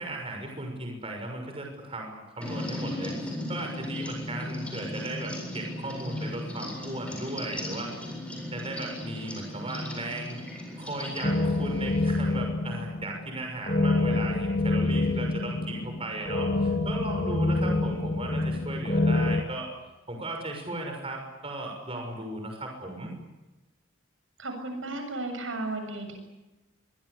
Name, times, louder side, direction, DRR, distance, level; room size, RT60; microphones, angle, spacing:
voice 1, 0.0-7.9 8.5-10.4 10.8-19.7 20.1-23.1, right 2 dB, 30° right, 2 dB, 6.3 m, -36 dB
sound 1, 2.4-12.2, left 1 dB, 5° left, 7.8 m, -37 dB
sound 2, 11.2-19.4, left 2 dB, 40° left, 2.5 m, -27 dB
voice 2, 24.4-26.2, right 2 dB, 70° right, 5 dB, 7.2 m, -34 dB
25.5 x 23.5 x 8.3 m, 1.1 s
head